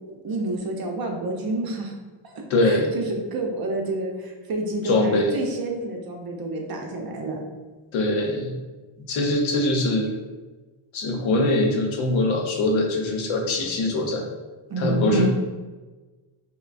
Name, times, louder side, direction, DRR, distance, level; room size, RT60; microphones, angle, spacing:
voice 1, 0.2-2.0 2.2-2.3 2.6-7.4 14.7-15.3, right 2 dB, 50° right, 1 dB, 0.7 m, -28 dB
voice 2, 2.5-3.0 4.8-5.3 7.9-8.6 9.1-10.1 10.9-14.3 14.8-15.3, left 1 dB, 70° left, 2 dB, 0.8 m, -22 dB
5.4 x 2.2 x 2.5 m, 1.3 s
cardioid pair, 130°, 49 cm